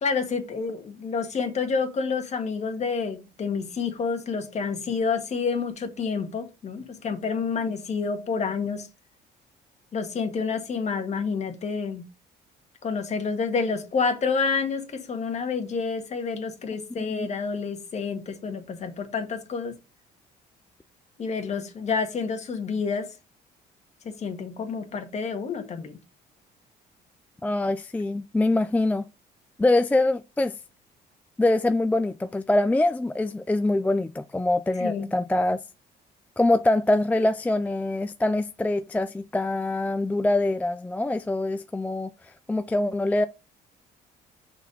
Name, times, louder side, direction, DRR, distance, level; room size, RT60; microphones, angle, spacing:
voice 1, 0.0-8.9 9.9-12.0 12.8-19.7 21.2-23.1 24.0-26.0 34.8-35.1, left 5 dB, 40° left, 1.7 m, -29 dB
voice 2, 27.4-29.0 29.6-30.5 31.4-35.6 36.4-43.3, left 2 dB, 10° left, 0.4 m, -24 dB
5.7 x 4.3 x 5.4 m
cardioid pair, 110°, 17 cm